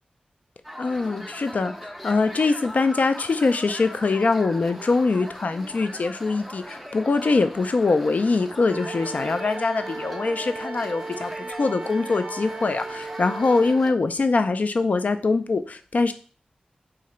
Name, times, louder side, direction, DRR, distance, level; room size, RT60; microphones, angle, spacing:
sound 1, 0.6-13.9, equal, ahead, 0.5 m, -40 dB
voice 1, 0.8-16.1, left 3 dB, 65° left, 9 dB, 0.4 m, -23 dB
Wind instrument woodwind instrument, 8.7-13.8, right 3 dB, 55° right, 0.4 m, -36 dB
2.8 x 2.5 x 4.2 m, 0.40 s
wide cardioid pair, 60°, 3 cm